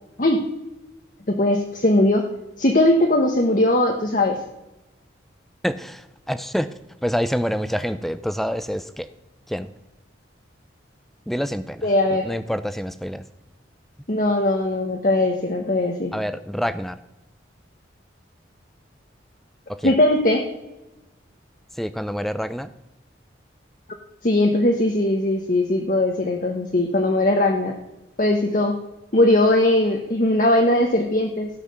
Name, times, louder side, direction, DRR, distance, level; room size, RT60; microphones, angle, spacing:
voice 1, 1.3-2.3 2.6-4.4 11.8-12.3 14.1-16.1 19.8-20.4 24.2-27.7 28.2-28.8 29.1-31.5, left 1 dB, 45° left, 3 dB, 1.1 m, -19 dB
voice 2, 5.6-9.1 9.5-9.7 11.3-13.3 16.1-17.0 19.7-20.0 21.7-22.7, equal, ahead, 13 dB, 0.5 m, -27 dB
16.0 x 5.8 x 6.7 m, 1.0 s
head